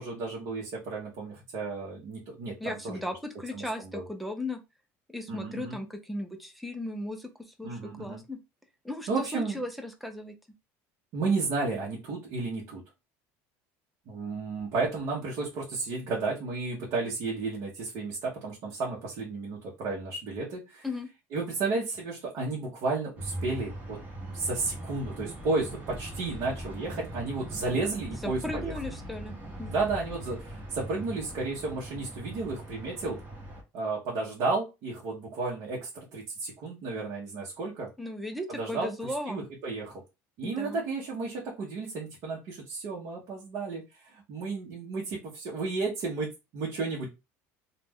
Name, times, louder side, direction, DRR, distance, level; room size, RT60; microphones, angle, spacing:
voice 1, 0.0-3.0 3.5-4.1 5.3-5.8 7.6-8.2 9.1-9.6 11.1-12.8 14.1-20.9 21.3-24.0 24.3-28.7 29.7-33.2 33.7-37.9 38.5-40.0 40.4-47.1, right 3 dB, 55° right, -3 dB, 0.8 m, -33 dB
voice 2, 2.6-4.6 5.1-7.3 7.6-8.4 8.8-10.3 20.8-21.1 28.2-29.3 29.6-29.7 38.0-39.5 40.4-40.8, left 1 dB, ahead, 6 dB, 0.4 m, -36 dB
sound 1, 23.2-33.6, right 1 dB, 25° right, 1.0 m, -40 dB
2.4 x 2.1 x 3.4 m, 0.25 s
cardioid pair, 155°, 7 cm